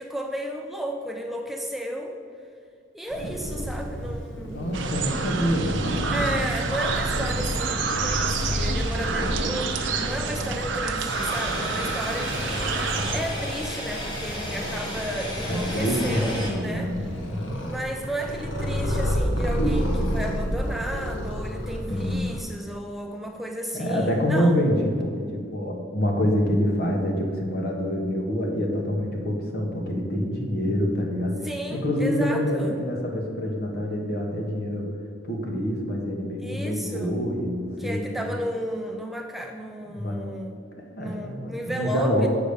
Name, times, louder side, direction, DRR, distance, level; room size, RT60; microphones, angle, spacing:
voice 1, 0.0-2.2 2.9-4.8 6.1-16.9 17.6-24.7 31.4-32.8 36.4-37.2 37.8-40.7 41.0-42.3, equal, ahead, 3 dB, 0.5 m, -33 dB
Purr, 3.1-22.4, equal, 80° left, 1.4 m, -31 dB
voice 2, 4.5-6.2 15.5-17.6 21.9-22.3 23.7-31.4 31.7-34.9 35.2-38.3 39.9-40.2 41.0-42.3, equal, 55° left, 1 dB, 1.5 m, -26 dB
sound 1, 4.7-13.2, right 4 dB, 80° right, 0.7 m, -28 dB
sound 2, 11.1-16.5, equal, 25° left, 1.5 m, -34 dB
7.6 x 5.1 x 6.8 m, 2.2 s
head